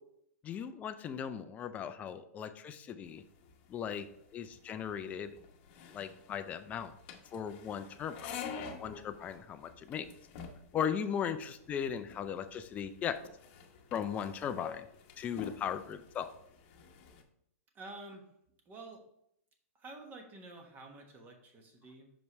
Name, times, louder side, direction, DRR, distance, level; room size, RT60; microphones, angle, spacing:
voice 1, 0.4-3.2 3.7-4.1 4.3-5.4 5.9-6.9 7.3-8.2 8.5-10.1 10.7-13.2 13.9-14.9 15.2-16.3, left 8 dB, 20° left, 9 dB, 0.4 m, -37 dB
sound 1, 3.0-17.2, left 6 dB, 45° left, 0.9 m, -49 dB
voice 2, 17.7-18.2 18.7-19.1 19.7-22.1, right 2 dB, 20° right, 4 dB, 1.2 m, -49 dB
6.0 x 5.3 x 3.1 m, 0.73 s
hypercardioid pair, 150°, 8 cm